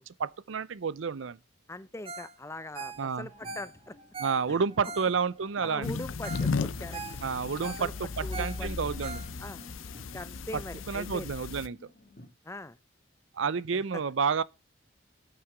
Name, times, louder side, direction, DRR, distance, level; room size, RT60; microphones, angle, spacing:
voice 1, 0.0-1.4 3.0-3.3 4.2-6.0 7.2-9.2 10.9-11.8 13.3-14.4, right 5 dB, 75° right, 0.5 m, -30 dB
voice 2, 1.7-4.0 4.5-4.6 5.6-7.0 7.6-8.7 9.4-9.6 10.0-11.3 12.4-12.8 13.7-14.0, left 2 dB, 15° left, 0.5 m, -42 dB
Ringtone, 2.0-2.3 2.6-5.5 5.9-6.0 6.2-6.5 6.8-9.7 10.1-10.2, right 4 dB, 30° right, 1.3 m, -42 dB
sound 1, 2.7-12.3, left 1 dB, 40° left, 1.7 m, -54 dB
sound 2, 5.8-11.7, left 4 dB, 80° left, 0.6 m, -35 dB
8.8 x 5.8 x 6.6 m
head